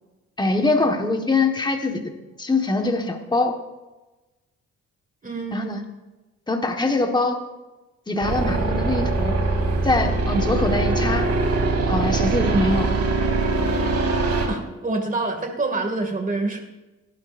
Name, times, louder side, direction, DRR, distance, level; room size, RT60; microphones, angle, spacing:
voice 1, 0.4-2.1 2.4-3.5 5.5-5.8 6.5-7.4 8.1-9.4 9.8-11.3 11.9-13.0, left 2 dB, 15° left, 3 dB, 1.5 m, -23 dB
voice 2, 5.2-5.7 14.5-16.6, right 3 dB, 25° right, 4 dB, 2.4 m, -26 dB
sound 1, 8.2-14.5, right 3 dB, 55° right, 2.8 m, -22 dB
18.0 x 12.0 x 2.6 m, 1.1 s
cardioid pair, 90°, 30 cm